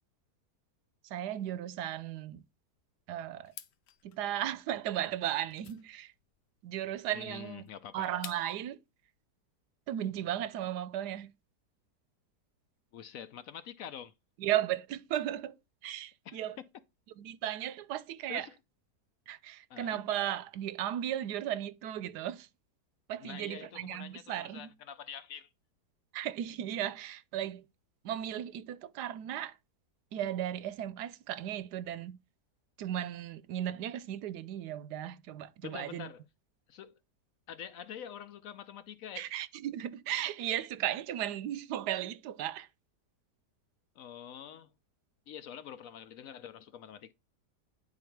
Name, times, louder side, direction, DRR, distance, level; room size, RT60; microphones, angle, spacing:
voice 1, 1.0-2.4 3.1-3.5 4.0-6.1 6.6-7.6 7.9-8.8 9.9-11.3 14.4-15.6 15.8-16.6 17.2-18.5 19.3-22.5 23.1-24.7 26.1-27.7 28.0-29.6 30.1-32.2 32.8-36.1 39.2-42.7, right 11 dB, 75° right, 1.2 m, -35 dB
sound 1, 3.4-8.7, left 10 dB, 85° left, 1.4 m, -52 dB
voice 2, 7.1-8.1 12.9-14.1 16.2-16.4 18.3-18.6 19.7-20.0 23.2-25.5 35.6-36.2 36.7-37.0 37.5-39.3 44.0-44.7 45.3-47.1, left 9 dB, 70° left, 0.9 m, -46 dB
9.8 x 4.0 x 4.5 m
omnidirectional pair, 1.8 m